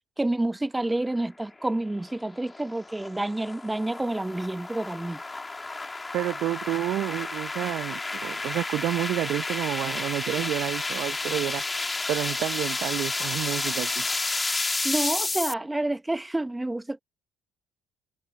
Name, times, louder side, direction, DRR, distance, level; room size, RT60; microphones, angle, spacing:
voice 1, 0.2-5.2 14.8-17.0, right 2 dB, 10° right, 1.2 m, -29 dB
sound 1, 1.6-15.5, left 3 dB, 20° left, 3.8 m, -31 dB
voice 2, 6.1-11.6 12.1-14.1, right 14 dB, 65° right, 0.9 m, -29 dB
hypercardioid pair, 55°, 0 cm